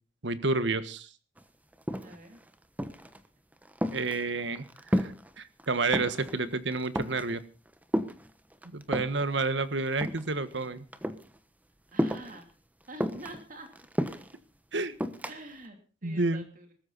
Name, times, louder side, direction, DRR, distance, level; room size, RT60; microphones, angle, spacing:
voice 1, 0.2-1.1 3.9-7.4 8.7-10.8 14.7-15.0 16.0-16.4, right 3 dB, 80° right, 13 dB, 1.5 m, -30 dB
sound 1, 1.4-1.5 1.7-2.4 2.8-3.2 3.5-5.3 5.6-6.3 6.7-7.3 7.9-9.2 9.9-10.7 10.9-11.3 12.0-12.4 13.0-14.4 15.0-15.4, equal, 10° right, 1.1 m, -32 dB
voice 2, 2.0-2.4 11.9-12.5 12.9-13.7 15.2-16.7, right 1 dB, 45° right, 5 dB, 3.1 m, -46 dB
21.0 x 13.5 x 4.1 m, 0.35 s
head